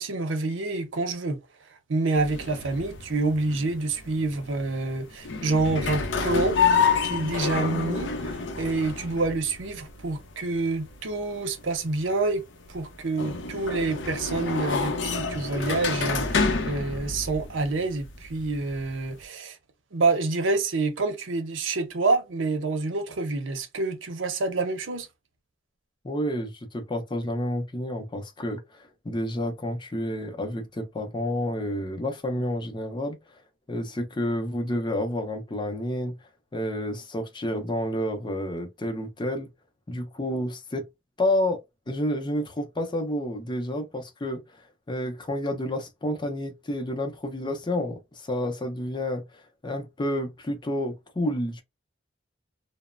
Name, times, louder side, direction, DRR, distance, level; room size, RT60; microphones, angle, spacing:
voice 1, 0.0-1.4 1.9-6.6 7.0-12.4 12.7-19.6 19.9-25.1, right 3 dB, 90° right, 0.7 m, -27 dB
sound 1, 2.1-19.2, left 5 dB, 70° left, 0.5 m, -29 dB
voice 2, 26.0-33.2 33.7-36.2 36.5-39.5 39.9-40.9 41.2-44.6 44.9-51.6, left 1 dB, 25° left, 0.5 m, -30 dB
3.0 x 2.0 x 2.3 m
head